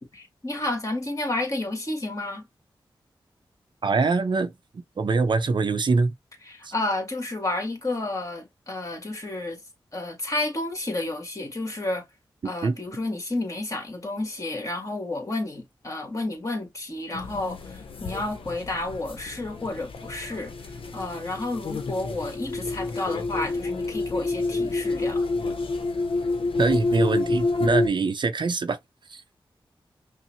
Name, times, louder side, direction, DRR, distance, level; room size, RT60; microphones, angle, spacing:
voice 1, 0.1-2.5 6.4-9.6 9.9-12.0 12.4-25.2, left 2 dB, 35° left, 1.6 m, -31 dB
voice 2, 3.8-6.1 6.6-6.7 12.6-12.7 26.6-28.8 29.1-29.2, right 4 dB, 60° right, 0.5 m, -24 dB
sound 1, 17.1-27.9, left 3 dB, 80° left, 0.6 m, -29 dB
5.5 x 2.0 x 2.8 m
cardioid pair, 60°, 9 cm